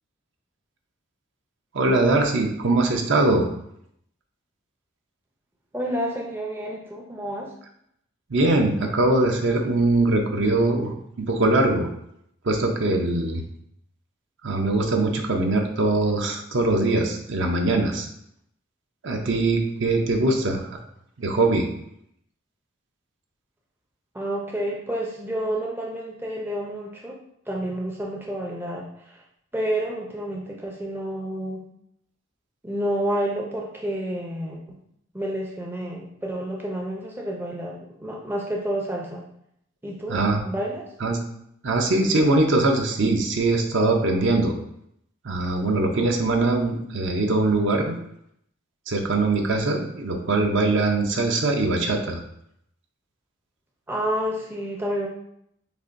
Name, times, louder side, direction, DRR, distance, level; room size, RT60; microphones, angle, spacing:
voice 1, 1.7-3.5 8.3-11.9 12.4-13.4 14.4-18.1 19.0-20.8 21.2-21.7 40.1-40.4 41.0-41.2 41.6-44.5 45.2-47.9 48.9-52.2, right 2 dB, 60° right, 3 dB, 0.6 m, -22 dB
voice 2, 5.7-7.5 24.1-27.2 27.5-29.2 29.5-31.6 32.6-34.8 35.1-39.2 39.8-40.8 53.9-55.1, right 1 dB, 10° right, -2 dB, 0.5 m, -29 dB
6.7 x 2.5 x 2.6 m, 0.72 s
head